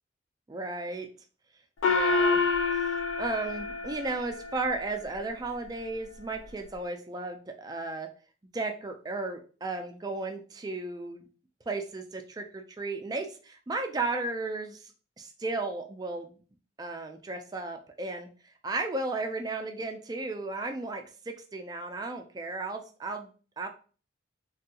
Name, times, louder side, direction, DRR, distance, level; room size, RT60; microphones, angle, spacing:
voice 1, 0.5-1.1 1.9-2.4 3.2-8.1 8.5-11.2 11.7-14.9 15.2-16.3 16.8-18.3 18.6-23.7, right 3 dB, 20° right, 4 dB, 0.3 m, -34 dB
Gong, 1.8-4.7, left 4 dB, 80° left, 0.4 m, -27 dB
3.4 x 2.3 x 2.8 m, 0.39 s
head